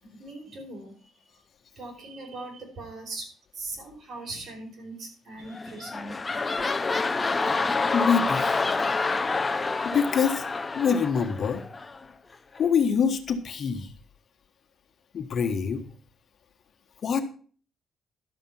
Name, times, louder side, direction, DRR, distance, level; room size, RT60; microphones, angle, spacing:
voice 1, 0.0-1.1 1.8-3.2 3.5-6.1, right 2 dB, 55° right, 2 dB, 4.8 m, -40 dB
sound 1, 5.5-12.0 12.6-12.7, left 3 dB, 25° left, 0.9 m, -27 dB
voice 2, 7.9-8.6 9.8-10.4 10.7-11.6 12.6-13.9 15.1-15.8 17.0-17.2, left 6 dB, 55° left, 7 dB, 1.4 m, -25 dB
12.0 x 7.3 x 5.6 m, 0.43 s
cardioid pair, 90°, 0 cm